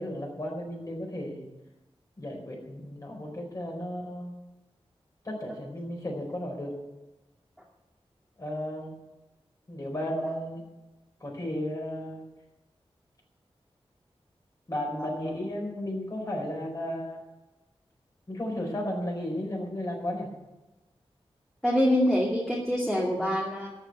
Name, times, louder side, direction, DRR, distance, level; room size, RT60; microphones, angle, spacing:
voice 1, 0.0-1.5 2.2-4.3 5.2-6.8 8.4-9.0 9.7-10.6 11.2-12.2 14.7-17.2 18.3-20.3, left 1 dB, 35° left, -1 dB, 4.6 m, -34 dB
voice 2, 21.6-23.7, equal, 5° left, -4 dB, 2.4 m, -26 dB
13.5 x 5.9 x 9.8 m, 1.0 s
wide cardioid pair, 100°, 10 cm